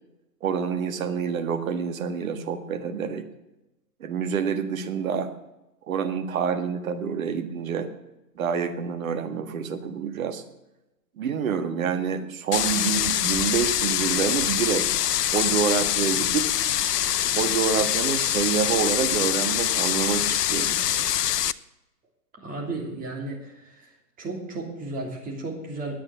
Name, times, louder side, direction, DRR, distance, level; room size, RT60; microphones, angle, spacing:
voice 1, 0.4-3.3 4.0-5.3 5.9-7.9 8.4-10.4 11.2-14.9 15.3-16.5 17.3-20.8, right 7 dB, 60° right, 8 dB, 1.7 m, -27 dB
sound 1, 12.5-21.5, left 11 dB, 80° left, 0.7 m, -24 dB
voice 2, 22.4-23.9 24.2-25.9, right 2 dB, 15° right, 0 dB, 3.2 m, -34 dB
10.5 x 8.9 x 7.9 m, 0.99 s
hypercardioid pair, 125°, 47 cm